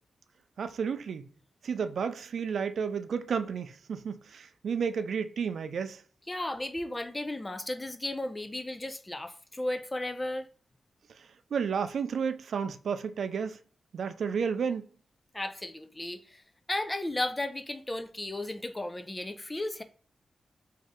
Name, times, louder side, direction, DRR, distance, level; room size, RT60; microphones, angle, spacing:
voice 1, 0.6-1.3 1.6-6.0 11.2-13.6 13.9-14.9, right 6 dB, 75° right, 0.3 m, -32 dB
voice 2, 6.3-10.5 15.3-16.4 16.7-19.8, left 1 dB, 25° left, 0.5 m, -34 dB
3.0 x 2.7 x 3.6 m
cardioid pair, 55°, 0 cm